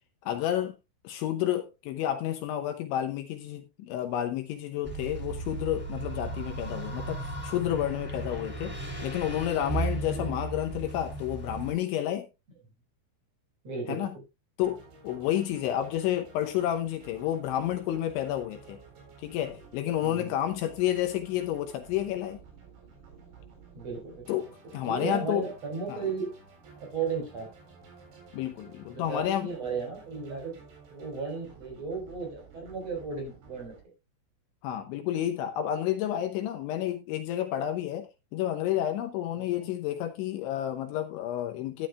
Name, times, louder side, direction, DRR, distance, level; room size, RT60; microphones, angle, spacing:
voice 1, 0.3-0.8 1.0-12.3 13.9-14.1 14.6-18.8 19.2-22.4 24.3-25.5 25.9-26.0 28.3-29.5 34.6-41.9, left 12 dB, 75° left, 3.0 m, -30 dB
sound 1, 4.8-11.7, right 2 dB, 5° right, 1.6 m, -35 dB
voice 2, 13.6-14.1 20.0-20.3 23.7-24.3 24.8-26.3 26.8-27.5 28.9-30.5 30.9-33.7 39.4-39.5, right 4 dB, 35° right, 4.8 m, -35 dB
sound 2, 14.6-33.8, right 5 dB, 60° right, 6.2 m, -53 dB
14.0 x 10.5 x 2.4 m
omnidirectional pair, 5.9 m